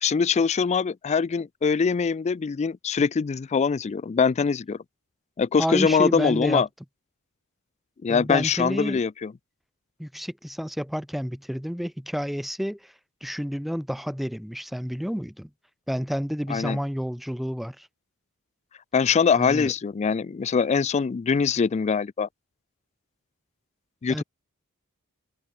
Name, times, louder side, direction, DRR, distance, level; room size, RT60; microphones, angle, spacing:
voice 1, 0.0-4.8 5.4-6.7 8.0-9.3 16.5-16.8 18.9-22.3 24.0-24.2, left 5 dB, 30° left, 0.3 m, -23 dB
voice 2, 5.6-6.6 8.1-9.0 10.0-12.9 13.2-15.5 15.9-17.9 19.3-19.7 24.1-24.2, equal, ahead, 0.7 m, -30 dB
head